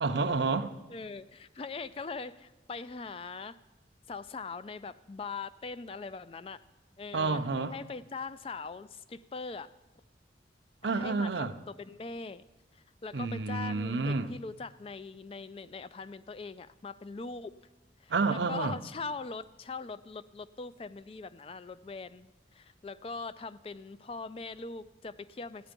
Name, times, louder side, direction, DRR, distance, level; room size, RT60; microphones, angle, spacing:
voice 1, 0.0-0.8 7.1-7.7 10.8-11.5 13.1-14.3 18.1-18.8, right 4 dB, 75° right, 0.6 m, -29 dB
voice 2, 0.9-3.6 4.1-6.6 7.0-7.4 7.7-9.7 10.9-12.4 12.7-17.5 18.0-25.7, left 4 dB, 30° left, 0.3 m, -41 dB
13.5 x 9.8 x 5.2 m
head